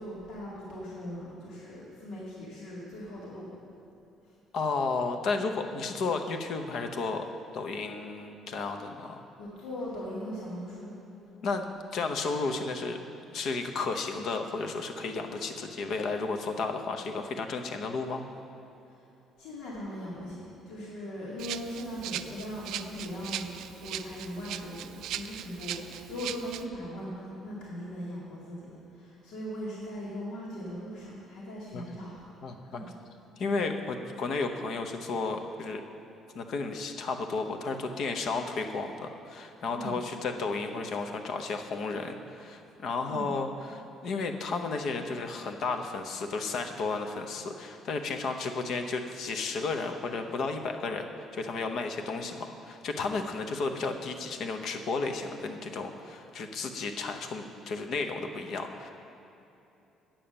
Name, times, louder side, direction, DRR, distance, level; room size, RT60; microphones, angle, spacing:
voice 1, 0.0-3.5 9.4-10.9 19.4-23.5 23.8-32.3 32.6-32.9 39.7-39.9 43.1-43.3, equal, 85° left, -6 dB, 2.2 m, -39 dB
voice 2, 4.5-7.2 7.5-9.2 11.4-11.6 11.9-13.0 13.3-18.3 31.7-31.8 32.4-32.8 33.4-35.8 36.3-51.1 51.3-58.9, left 4 dB, 50° left, 5 dB, 0.7 m, -33 dB
Rattle (instrument), 21.4-26.6, right 11 dB, 70° right, 0.3 m, -39 dB
8.8 x 7.0 x 6.9 m, 2.9 s
cardioid pair, 160°, 0 cm